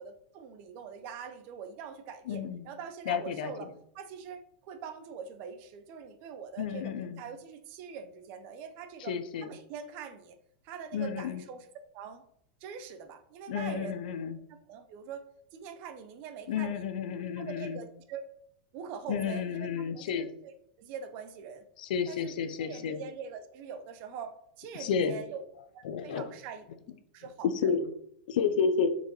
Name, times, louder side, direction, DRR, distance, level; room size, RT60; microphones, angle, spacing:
voice 1, 0.0-3.7 3.9-9.1 9.4-10.4 10.6-11.7 11.9-12.2 12.6-13.9 14.7-15.3 15.5-16.9 17.4-18.3 18.7-19.7 19.9-21.6 22.1-22.3 22.6-25.4 25.7-26.6 27.1-27.5, right 6 dB, 35° right, 8 dB, 0.8 m, -43 dB
voice 2, 2.3-2.6 3.0-3.7 6.6-7.2 9.0-9.5 10.9-11.4 13.5-14.4 16.5-17.8 19.1-20.3 21.8-23.0 24.7-25.2 25.8-26.3 27.4-27.9 28.3-28.9, left 6 dB, 60° left, 10 dB, 0.8 m, -31 dB
6.8 x 4.7 x 4.1 m, 0.71 s
supercardioid pair, 165°, 5 cm